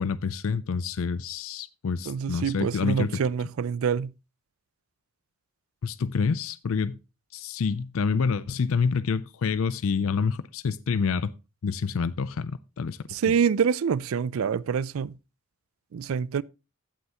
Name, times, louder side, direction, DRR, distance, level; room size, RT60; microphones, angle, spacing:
voice 1, 0.0-3.2 5.8-7.0 7.3-11.3 11.6-13.0, left 5 dB, 65° left, 0.4 m, -27 dB
voice 2, 2.1-4.1 13.1-15.1 15.9-16.4, right 7 dB, 70° right, 0.4 m, -26 dB
15.5 x 5.5 x 2.9 m
head